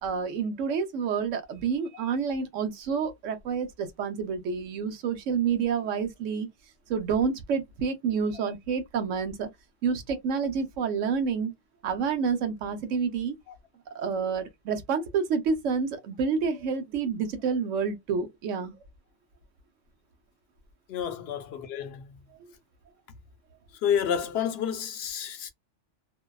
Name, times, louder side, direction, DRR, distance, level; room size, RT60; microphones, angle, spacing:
voice 1, 0.0-6.5 6.9-9.5 9.8-11.5 11.8-13.4 13.9-18.8, right 6 dB, 85° right, 1.0 m, -28 dB
voice 2, 20.9-22.2 23.8-25.5, left 8 dB, 65° left, 0.7 m, -30 dB
2.6 x 2.2 x 2.2 m
omnidirectional pair, 1.3 m